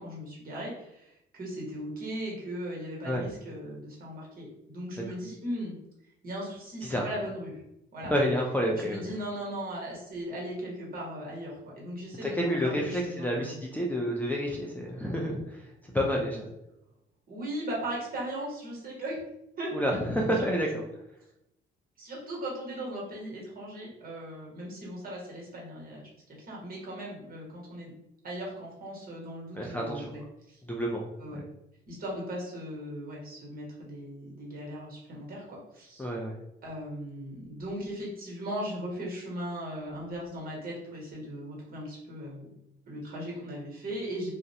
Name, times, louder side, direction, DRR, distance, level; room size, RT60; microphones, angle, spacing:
voice 1, 0.0-5.7 6.2-7.6 7.9-8.1 8.7-13.6 17.3-19.2 19.6-19.8 22.0-26.1 26.5-27.9 28.2-30.2 30.5-30.6 31.2-31.4 31.9-36.0 36.6-42.5 42.9-44.3, equal, 45° right, -2 dB, 1.1 m, -38 dB
voice 2, 8.0-9.0 12.2-15.6 15.9-16.5 19.7-20.8 29.5-30.1 30.7-31.0 36.0-36.3, equal, 10° left, -3 dB, 0.4 m, -29 dB
2.4 x 2.0 x 2.8 m, 0.83 s
cardioid pair, 90°, 20 cm